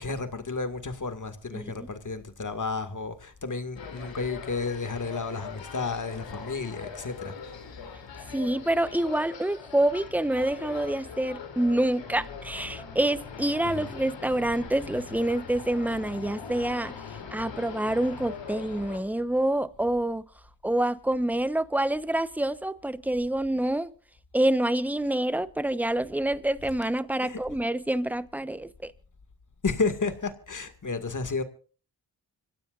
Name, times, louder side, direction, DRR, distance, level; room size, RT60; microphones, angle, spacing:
voice 1, 0.0-7.3 13.6-13.9 27.2-27.4 29.6-31.4, left 4 dB, 45° left, 2.2 m, -32 dB
voice 2, 1.5-1.9 8.3-16.9 17.3-20.2 20.6-23.9 24.3-28.9, right 1 dB, 5° right, 1.0 m, -27 dB
sound 1, 3.7-19.0, left 6 dB, 85° left, 3.3 m, -41 dB
25.5 x 16.0 x 2.6 m
cardioid pair, 50°, 44 cm